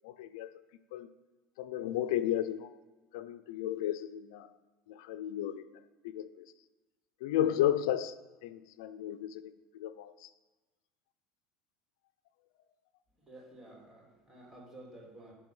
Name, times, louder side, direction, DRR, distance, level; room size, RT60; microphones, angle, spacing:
voice 1, 0.0-0.6 0.9-1.1 1.6-2.7 3.1-4.5 4.9-6.5 7.2-8.2 8.4-10.3, left 11 dB, 80° left, 12 dB, 0.4 m, -34 dB
voice 2, 13.3-15.3, right 1 dB, 20° right, -3 dB, 2.4 m, -52 dB
9.2 x 3.4 x 5.4 m, 1.2 s
supercardioid pair, 125°, 3 cm